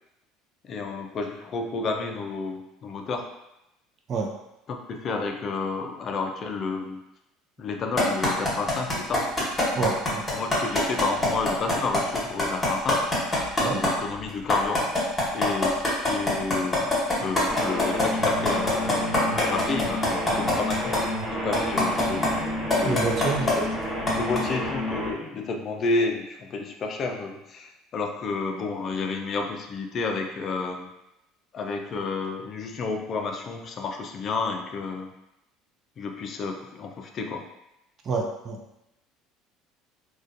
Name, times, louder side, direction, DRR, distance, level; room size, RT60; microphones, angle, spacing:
voice 1, 0.6-3.2 4.7-7.0 7.6-9.5 10.3-13.0 13.6-14.9 15.3-16.9 17.2-21.0 21.3-22.3 22.7-23.0 23.6-23.7 24.1-30.9 31.5-35.1 36.0-37.5, left 4 dB, 45° left, 3 dB, 0.3 m, -30 dB
sound 1, 8.0-13.9 14.3-21.0 21.5-22.3 22.7-23.5 24.1-24.4, left 2 dB, 20° left, 1.1 m, -23 dB
voice 2, 9.7-10.2 13.6-13.8 22.8-23.5 38.0-38.6, right 4 dB, 40° right, 1 dB, 0.5 m, -27 dB
sound 2, 17.5-25.1, left 1 dB, 20° right, 1.4 m, -30 dB
2.3 x 2.2 x 2.5 m, 0.88 s
hypercardioid pair, 75°, 0 cm